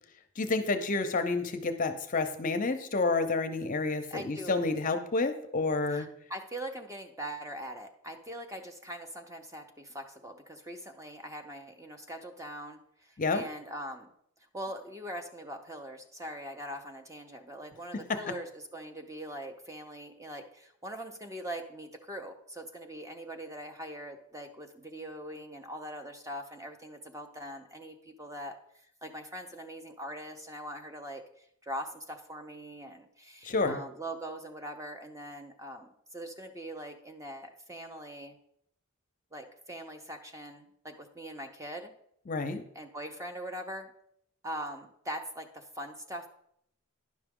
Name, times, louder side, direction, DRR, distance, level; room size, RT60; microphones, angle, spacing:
voice 1, 0.4-6.1 13.2-13.5 18.1-18.2 33.4-33.8 42.3-42.6, left 3 dB, 35° left, 8 dB, 0.6 m, -29 dB
voice 2, 4.1-4.6 5.9-14.1 14.5-28.6 29.0-38.4 39.3-41.9 42.7-43.9 44.4-46.3, right 1 dB, 15° right, 5 dB, 0.6 m, -42 dB
10.5 x 5.8 x 3.6 m, 0.70 s
head